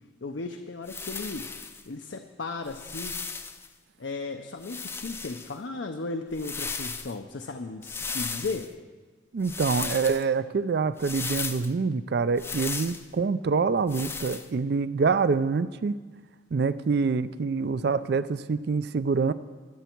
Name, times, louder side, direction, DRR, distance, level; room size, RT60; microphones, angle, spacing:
voice 1, 0.2-1.5 1.9-3.2 4.0-8.7, left 3 dB, 70° left, 5 dB, 0.7 m, -35 dB
sound 1, 0.9-1.8 2.7-3.7 4.6-5.5 6.3-7.1 7.8-8.7 9.4-10.2 11.0-11.7 12.4-13.0 13.9-14.5, left 4 dB, 10° left, 0.4 m, -35 dB
voice 2, 9.3-16.0 16.5-19.3, right 4 dB, 55° right, 15 dB, 0.4 m, -26 dB
23.0 x 8.1 x 4.5 m, 1.4 s
head